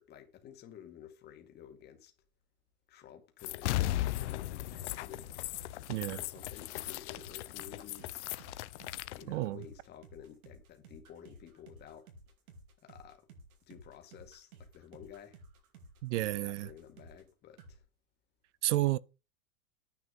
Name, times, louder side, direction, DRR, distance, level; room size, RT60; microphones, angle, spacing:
voice 1, 0.0-2.1 2.9-5.3 6.1-8.3 9.1-12.1 12.8-13.3 13.7-15.4 16.2-17.8, left 9 dB, 25° left, 2.1 m, -52 dB
sound 1, 3.4-9.2, left 15 dB, 55° left, 0.9 m, -37 dB
sound 2, 4.7-17.3 17.6-17.8, right 2 dB, 80° right, 4.7 m, -55 dB
voice 2, 5.9-6.2 9.3-9.6 16.0-16.7 18.6-19.0, right 17 dB, 55° right, 0.7 m, -31 dB
10.0 x 8.2 x 5.3 m
supercardioid pair, 165°, 42 cm